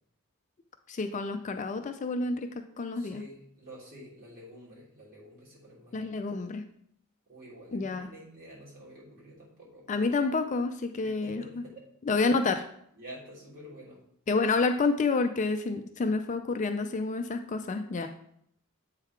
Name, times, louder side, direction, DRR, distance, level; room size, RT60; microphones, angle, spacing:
voice 1, 0.9-3.2 5.9-6.6 7.7-8.1 9.9-11.4 12.1-12.7 14.3-18.1, left 3 dB, 35° left, 7 dB, 0.4 m, -29 dB
voice 2, 2.9-6.3 7.3-9.8 11.0-11.9 12.9-14.0 18.0-18.1, equal, 40° right, -7 dB, 3.2 m, -49 dB
8.1 x 3.8 x 4.5 m, 0.68 s
head